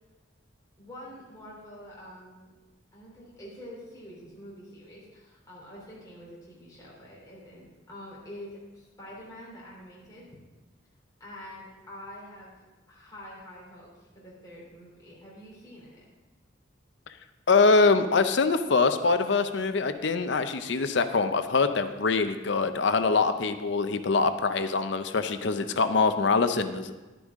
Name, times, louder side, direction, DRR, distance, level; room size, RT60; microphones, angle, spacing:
voice 1, 0.8-2.5 2.9-10.3 11.2-16.0, left 1 dB, 20° left, -6 dB, 3.2 m, -46 dB
voice 2, 17.5-26.9, left 4 dB, 65° left, 10 dB, 0.6 m, -24 dB
11.0 x 10.0 x 3.6 m, 1.2 s
head